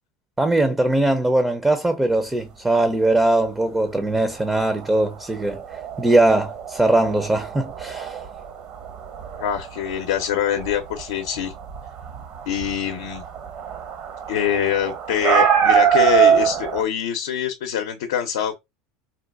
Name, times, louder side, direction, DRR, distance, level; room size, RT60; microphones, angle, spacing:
voice 1, 0.4-5.6 6.0-8.2, right 2 dB, 10° right, 0.5 m, -20 dB
sound 1, 4.3-16.8, right 8 dB, 55° right, 0.8 m, -24 dB
voice 2, 9.4-11.5 12.5-13.2 14.3-18.5, left 9 dB, 80° left, 0.6 m, -24 dB
3.8 x 2.3 x 2.2 m
supercardioid pair, 110°, 2 cm